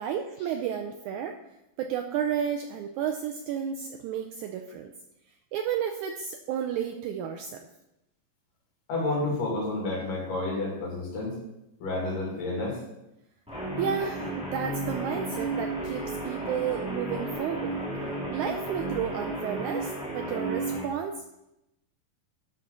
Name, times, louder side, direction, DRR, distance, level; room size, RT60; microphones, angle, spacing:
voice 1, 0.0-1.4 1.8-4.9 5.5-7.7 13.8-17.8 18.3-21.2, right 8 dB, 85° right, 4 dB, 1.7 m, -32 dB
voice 2, 8.9-11.4 11.8-12.8, left 2 dB, 70° left, -2 dB, 4.2 m, -30 dB
Guitar, 13.5-20.9, right 2 dB, ahead, 1.7 m, -33 dB
11.5 x 6.1 x 3.9 m, 0.89 s
omnidirectional pair, 4.0 m